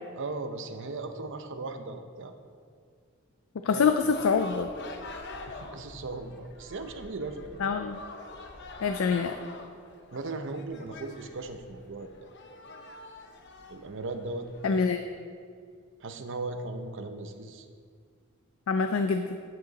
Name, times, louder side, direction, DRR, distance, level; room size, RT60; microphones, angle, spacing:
voice 1, 0.1-2.3 3.7-4.0 5.5-7.6 10.1-12.3 13.7-14.9 16.0-17.7, right 3 dB, 65° right, 8 dB, 0.7 m, -37 dB
voice 2, 3.7-4.7 7.6-8.0 8.8-9.4 14.6-15.0 18.7-19.4, left 5 dB, 75° left, 8 dB, 0.4 m, -25 dB
sound 1, 3.9-14.9, left 3 dB, 55° left, 0.8 m, -45 dB
9.2 x 7.8 x 4.0 m, 2.1 s
head